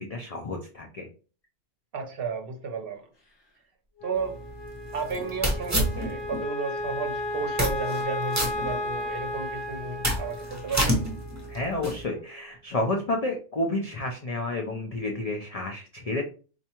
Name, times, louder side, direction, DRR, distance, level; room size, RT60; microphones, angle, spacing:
voice 1, 0.1-1.1 11.5-16.2, left 2 dB, 60° left, 2 dB, 0.4 m, -30 dB
voice 2, 1.9-3.0 4.0-4.4 4.9-11.0, right 5 dB, 55° right, 4 dB, 0.8 m, -33 dB
Wind instrument woodwind instrument, 4.0-12.4, left 1 dB, 25° left, 0.7 m, -35 dB
sound 1, 4.2-6.4 6.8-6.9 7.4-8.0 8.3-9.3 9.7-12.0, equal, 15° right, 0.8 m, -29 dB
4.5 x 2.5 x 2.8 m, 0.37 s
omnidirectional pair, 1.3 m